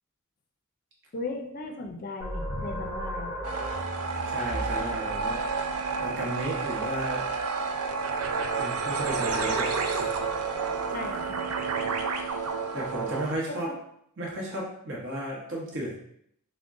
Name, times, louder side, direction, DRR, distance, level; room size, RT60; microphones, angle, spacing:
voice 1, 1.1-3.4 10.9-11.6, left 3 dB, 40° left, 3 dB, 0.4 m, -36 dB
sound 1, 2.2-7.5, equal, 25° right, 1.1 m, -37 dB
sound 2, 3.4-13.3, right 4 dB, 80° right, 0.4 m, -30 dB
voice 2, 4.3-5.5 6.0-7.3 8.6-10.1 10.4-10.7 12.7-13.7 14.2-15.9, right 1 dB, 60° right, -3 dB, 1.0 m, -34 dB
3.6 x 2.1 x 3.6 m, 0.71 s
head